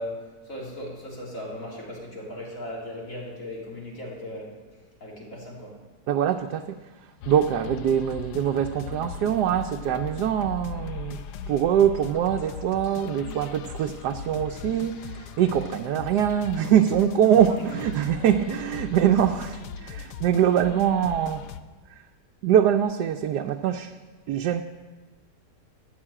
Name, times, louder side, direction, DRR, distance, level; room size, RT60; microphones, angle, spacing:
voice 1, 0.0-5.9 17.6-17.7, left 1 dB, 55° left, -4 dB, 3.9 m, -38 dB
voice 2, 6.1-11.2 11.5-21.5 21.9-22.0 22.4-24.0 24.3-24.6, right 9 dB, 85° right, 4 dB, 1.2 m, -23 dB
sound 1, 7.2-21.6, left 7 dB, 80° left, 1.3 m, -39 dB
13.5 x 8.1 x 8.6 m, 1.3 s
omnidirectional pair, 1.7 m